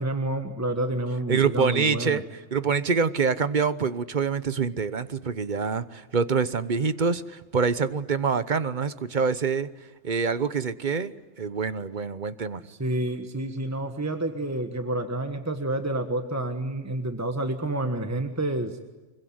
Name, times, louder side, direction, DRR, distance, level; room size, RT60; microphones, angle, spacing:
voice 1, 0.0-2.2 12.6-18.8, right 1 dB, 15° right, 6 dB, 1.5 m, -29 dB
voice 2, 1.3-2.2 2.5-9.7 10.0-12.6, right 5 dB, 45° right, 14 dB, 1.1 m, -26 dB
25.0 x 22.5 x 9.5 m, 1.2 s
omnidirectional pair, 1.2 m